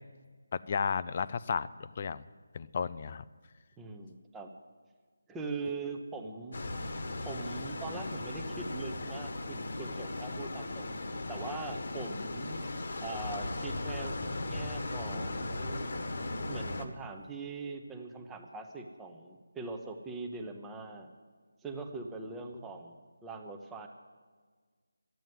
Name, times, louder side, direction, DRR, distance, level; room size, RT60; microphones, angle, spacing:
voice 1, 0.5-2.2 2.5-3.2, left 6 dB, 30° left, 16 dB, 0.4 m, -33 dB
voice 2, 3.8-4.5 5.3-6.6 7.2-10.9 11.3-12.6 13.0-14.2 14.4-15.9 16.4-21.1 21.6-23.9, right 3 dB, 5° right, 3 dB, 0.8 m, -42 dB
sound 1, 6.5-16.8, left 2 dB, 50° left, 1.3 m, -37 dB
12.0 x 9.2 x 9.5 m, 1.5 s
figure-of-eight pair, 170°, 0 cm